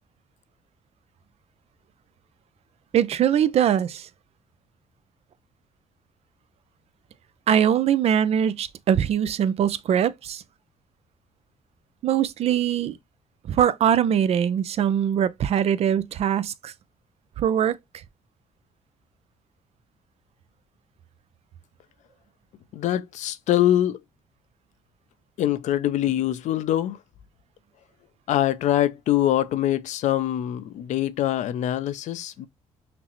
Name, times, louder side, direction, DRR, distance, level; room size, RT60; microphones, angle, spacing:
voice 1, 2.9-4.1 7.5-10.4 12.0-13.0 13.4-16.7 17.4-17.8, right 9 dB, 55° right, 0.4 m, -22 dB
voice 2, 22.7-24.0 25.4-27.0 28.3-32.5, left 12 dB, 70° left, 0.5 m, -24 dB
5.8 x 2.0 x 3.0 m
cardioid pair, 100°, 13 cm